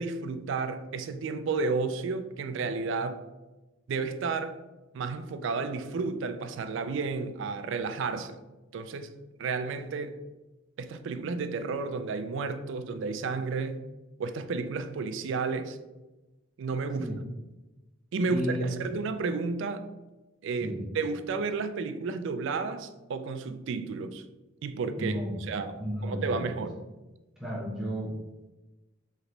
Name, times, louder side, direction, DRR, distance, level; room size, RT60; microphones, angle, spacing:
voice 1, 0.0-3.2 3.9-4.6 4.9-8.4 8.7-9.1 9.4-10.2 10.8-13.8 14.2-15.8 16.6-17.1 18.1-19.9 20.4-24.2 24.6-26.8, right 4 dB, 65° right, 0.3 m, -32 dB
voice 2, 18.3-18.9 20.6-20.8 25.0-25.4 25.8-26.7 27.4-28.1, equal, ahead, 0.9 m, -33 dB
3.2 x 2.9 x 3.8 m
head